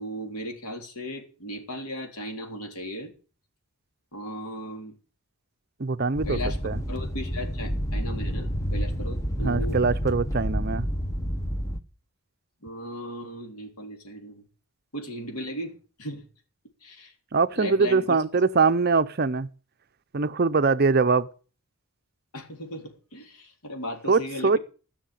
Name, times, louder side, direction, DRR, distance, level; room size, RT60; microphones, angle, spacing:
voice 1, 0.0-3.1 4.1-5.0 6.3-6.6 6.9-9.8 12.6-14.4 14.9-16.2 16.8-17.1 17.6-18.2 22.3-24.6, equal, 85° left, 3.5 m, -36 dB
voice 2, 5.8-6.4 6.6-6.8 9.4-10.9 17.3-19.5 20.1-21.3 24.1-24.6, right 4 dB, 45° right, 0.6 m, -22 dB
sound 1, 6.2-11.8, equal, 15° left, 0.8 m, -29 dB
14.5 x 6.5 x 9.0 m
head